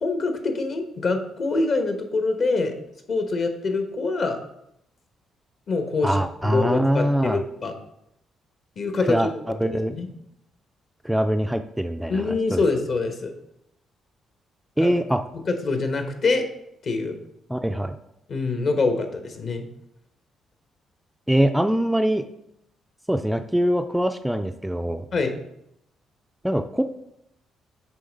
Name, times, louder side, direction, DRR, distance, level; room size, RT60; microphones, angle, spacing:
voice 1, 0.0-2.7 3.1-4.4 5.7-6.2 6.4-7.7 8.8-9.2 9.7-10.1 12.1-13.3 14.8-14.9 15.5-16.4 16.8-17.2 18.3-19.6 25.1-25.4, left 3 dB, 55° left, 6 dB, 1.1 m, -25 dB
voice 2, 6.0-7.4 9.1-9.3 9.6-9.9 11.0-12.6 14.8-15.2 17.5-18.0 21.3-22.3 23.1-25.1 26.4-26.8, equal, 5° right, 7 dB, 0.3 m, -23 dB
7.8 x 3.2 x 5.2 m, 0.79 s
cardioid pair, 90°, 0 cm